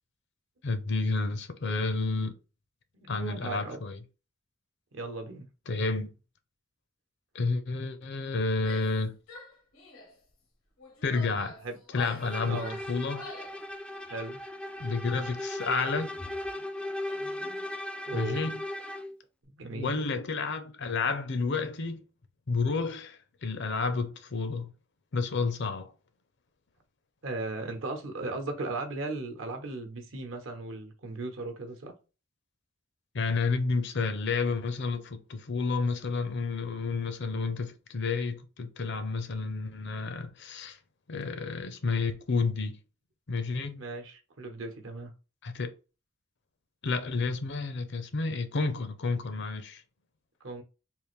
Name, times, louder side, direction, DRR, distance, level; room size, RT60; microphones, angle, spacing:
voice 1, 0.6-2.3 3.1-4.0 5.7-6.1 7.3-9.2 11.0-11.5 11.9-13.3 14.8-16.1 18.1-18.6 19.7-22.0 22.5-24.7 25.1-25.9 33.1-40.8 41.1-42.8 43.3-43.8 45.4-45.7 46.8-49.8, left 4 dB, 60° left, 0.5 m, -30 dB
voice 2, 2.9-3.8 4.9-5.5 11.6-11.8 12.4-12.8 14.1-14.4 18.1-18.5 19.5-20.0 27.2-31.9 43.7-45.1 50.4-50.6, right 2 dB, 70° right, 0.9 m, -37 dB
Female speech woman speaking / Yell, 8.6-9.0 9.3-10.1 10.8-13.6, left 3 dB, 90° left, 1.0 m, -46 dB
Bowed string instrument, 12.2-19.2, left 1 dB, 5° left, 0.3 m, -37 dB
3.6 x 2.5 x 3.1 m
head